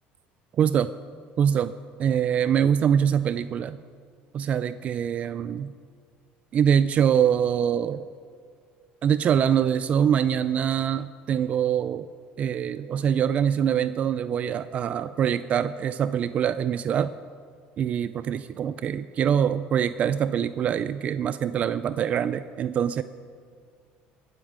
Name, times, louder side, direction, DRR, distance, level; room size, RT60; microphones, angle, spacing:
voice 1, 0.6-0.9 1.4-3.8 4.3-5.7 6.5-8.0 9.0-12.1 12.4-17.1 17.8-23.0, right 8 dB, 40° right, 13 dB, 0.4 m, -24 dB
19.5 x 8.3 x 7.4 m, 2.1 s
cardioid pair, 145°, 4 cm